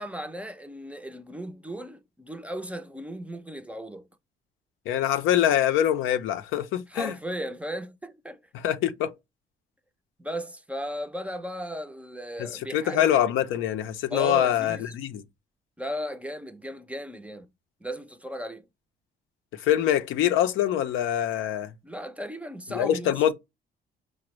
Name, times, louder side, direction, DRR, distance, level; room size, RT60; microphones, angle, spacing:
voice 1, 0.0-4.1 6.9-8.4 10.2-13.0 14.1-14.8 15.8-17.5 17.8-18.6 21.8-23.1, equal, 5° right, 0.4 m, -36 dB
voice 2, 4.9-7.1 8.5-9.2 12.4-15.2 19.5-21.7 22.7-23.3, left 11 dB, 90° left, 0.5 m, -24 dB
5.0 x 2.1 x 2.9 m
cardioid pair, 90°, 20 cm